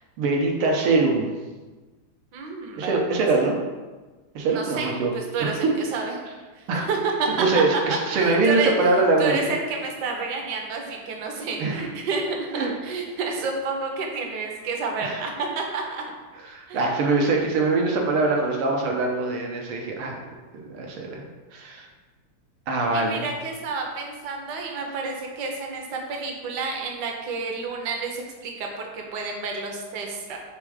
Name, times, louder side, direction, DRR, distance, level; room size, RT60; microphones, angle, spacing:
voice 1, 0.2-1.4 2.8-3.6 4.4-5.1 5.4-5.7 6.7-6.9 7.4-9.5 11.6-11.9 12.6-12.7 15.0-15.2 16.5-20.2 20.7-21.9 22.7-23.3, right 3 dB, 85° right, 1 dB, 1.8 m, -23 dB
voice 2, 2.3-3.0 4.5-6.2 6.5-7.5 7.7-7.8 8.1-16.0 16.7-16.9 22.9-30.4, right 4 dB, 60° right, 1 dB, 1.4 m, -30 dB
5.6 x 3.5 x 4.9 m, 1.3 s
omnidirectional pair, 2.3 m